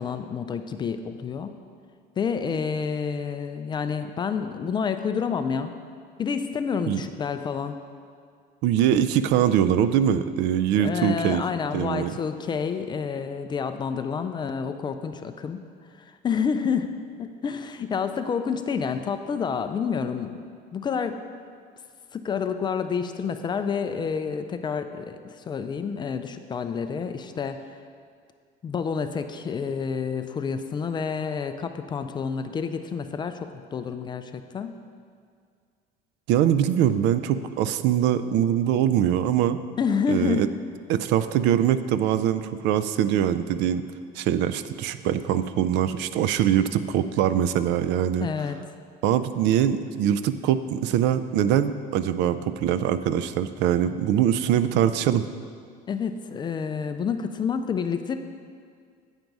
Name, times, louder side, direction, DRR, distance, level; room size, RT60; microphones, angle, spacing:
voice 1, 0.0-1.5 2.2-5.7 6.2-7.8 10.8-15.6 15.9-16.9 17.2-20.4 20.7-21.1 22.1-27.8 28.6-34.7 39.8-40.5 48.2-48.6 55.9-58.2, left 6 dB, 25° left, 8 dB, 0.3 m, -29 dB
voice 2, 8.6-11.4 11.7-12.1 36.3-39.6 40.1-40.5 40.9-43.8 44.2-48.3 49.0-55.2, right 10 dB, 70° right, 12 dB, 0.4 m, -23 dB
8.9 x 5.2 x 4.6 m, 2.1 s
cardioid pair, 140°, 19 cm